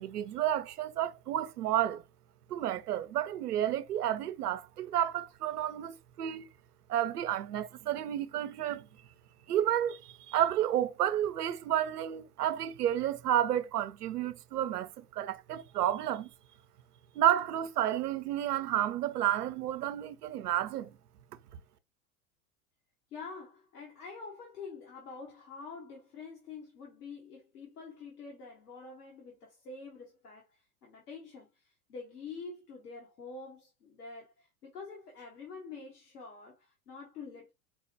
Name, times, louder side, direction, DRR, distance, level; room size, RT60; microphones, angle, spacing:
voice 1, 0.0-2.0 2.5-6.5 6.9-8.9 9.5-16.3 17.2-20.9, right 11 dB, 85° right, 0.5 m, -31 dB
voice 2, 23.1-37.5, left 4 dB, 80° left, 1.2 m, -47 dB
4.6 x 2.1 x 2.7 m
hypercardioid pair, 100°, 45 cm